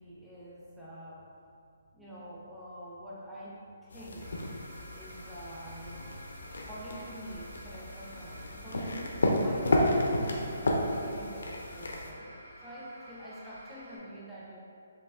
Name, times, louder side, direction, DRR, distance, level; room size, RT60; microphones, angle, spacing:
voice 1, 0.0-1.4 1.9-4.5 4.9-6.2 6.5-12.3 12.6-14.6, right 1 dB, ahead, -9 dB, 0.4 m, -46 dB
sound 1, 3.9-12.1, left 1 dB, 85° left, 0.5 m, -32 dB
sound 2, 4.2-14.0, right 1 dB, 60° right, 1.2 m, -51 dB
4.6 x 2.9 x 2.4 m, 2.4 s
hypercardioid pair, 175°, 0 cm